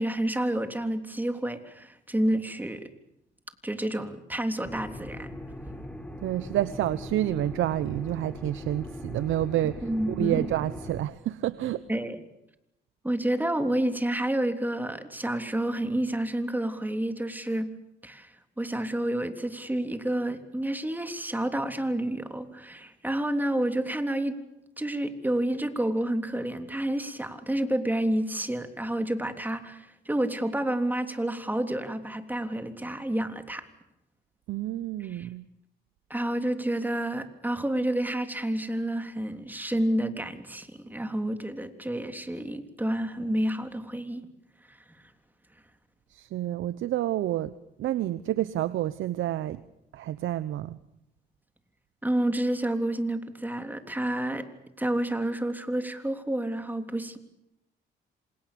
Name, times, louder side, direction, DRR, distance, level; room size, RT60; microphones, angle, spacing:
voice 1, 0.0-2.9 3.6-5.3 9.8-10.5 11.9-12.2 13.0-17.7 18.0-18.3 18.6-24.4 24.8-33.7 35.1-35.3 36.1-44.2 44.7-44.8 52.0-54.5 54.8-57.2, right 1 dB, 10° right, 7 dB, 3.4 m, -29 dB
sound 1, 4.6-11.0, left 1 dB, 5° left, 4.2 m, -40 dB
voice 2, 6.2-9.9 10.2-11.9 34.5-35.5 46.1-49.6 49.9-50.8, right 13 dB, 75° right, 15 dB, 1.0 m, -29 dB
27.5 x 27.0 x 7.0 m, 0.86 s
cardioid pair, 90°, 20 cm